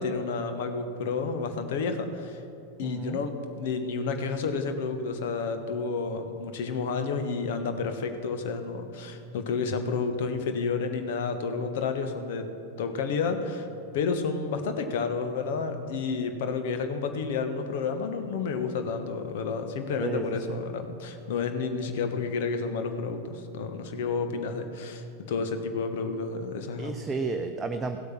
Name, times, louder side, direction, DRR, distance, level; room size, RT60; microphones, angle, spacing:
voice 1, 0.0-2.4 2.8-12.5 12.8-13.7 13.9-26.9, left 4 dB, 55° left, 7 dB, 1.2 m, -30 dB
voice 2, 2.8-3.2 20.0-20.6 26.8-28.0, right 4 dB, 15° right, 5 dB, 0.6 m, -32 dB
15.5 x 8.3 x 5.9 m, 2.6 s
figure-of-eight pair, 90°, 0 cm